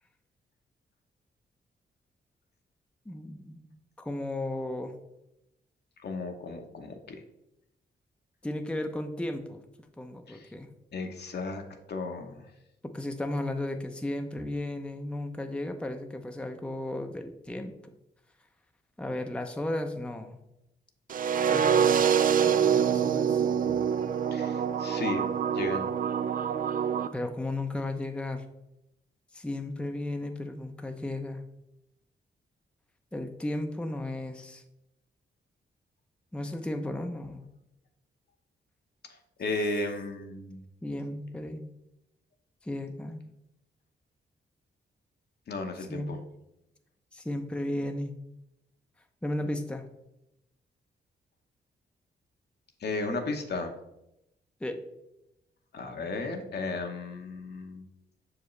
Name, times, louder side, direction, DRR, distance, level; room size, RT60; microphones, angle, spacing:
voice 1, 3.1-3.7 4.0-4.9 8.4-9.6 10.0-10.7 12.8-17.7 19.0-20.4 21.4-22.0 22.5-23.5 25.2-25.3 27.1-28.4 29.3-31.4 33.1-34.6 36.3-37.4 40.8-41.7 42.6-43.2 45.9-46.2 47.1-48.1 49.2-49.8 54.6-54.8, left 1 dB, 5° left, 5 dB, 0.6 m, -34 dB
voice 2, 6.0-7.2 10.3-10.5 10.9-11.6 11.9-12.4 24.3-25.9 39.4-40.6 45.5-46.2 52.8-53.7 55.7-57.9, left 3 dB, 65° left, 4 dB, 0.9 m, -34 dB
sound 1, 21.1-27.1, right 8 dB, 50° right, 0.4 m, -25 dB
6.2 x 4.8 x 3.2 m, 0.86 s
cardioid pair, 70°, 19 cm